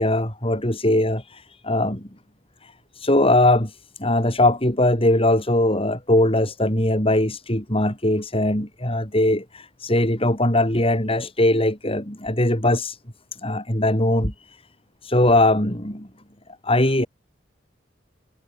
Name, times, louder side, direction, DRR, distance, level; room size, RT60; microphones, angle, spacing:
voice 1, 0.0-2.1 2.6-13.0 13.4-14.6 15.0-16.1 16.6-17.1, left 1 dB, 30° left, 7.5 m, -21 dB
head